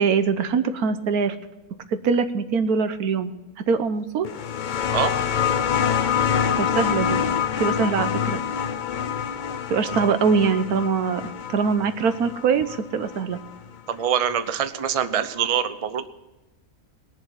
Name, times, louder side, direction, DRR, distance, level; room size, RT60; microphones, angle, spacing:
voice 1, 0.0-1.4 1.9-3.3 3.7-4.3 6.6-7.2 7.6-8.4 9.7-13.4, right 5 dB, 90° right, 10 dB, 1.4 m, -23 dB
sound 1, 4.2-13.5 14.6-14.7, left 8 dB, 55° left, 0.5 m, -26 dB
voice 2, 13.9-16.1, right 8 dB, 35° right, 10 dB, 0.6 m, -24 dB
20.0 x 7.1 x 5.7 m, 1.1 s
omnidirectional pair, 1.5 m